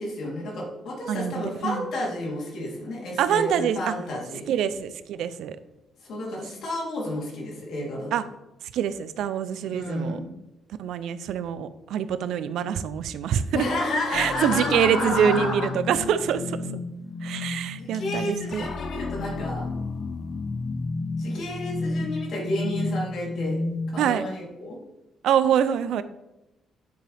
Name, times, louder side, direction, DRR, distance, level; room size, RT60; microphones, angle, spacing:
voice 1, 0.0-4.5 6.0-8.1 9.6-10.3 13.5-15.7 17.8-19.6 21.2-23.6 23.9-24.8, left 1 dB, 70° left, -3 dB, 3.5 m, -31 dB
voice 2, 1.1-1.9 3.2-3.9 4.5-5.6 8.1-8.2 8.7-10.2 10.8-13.6 14.1-16.6 17.2-18.6 24.0-24.2 25.2-26.0, right 8 dB, 80° right, 13 dB, 0.6 m, -25 dB
sound 1, 14.1-24.1, left 3 dB, 45° left, 0.7 m, -32 dB
10.0 x 7.5 x 3.5 m, 0.95 s
cardioid pair, 90°, 0 cm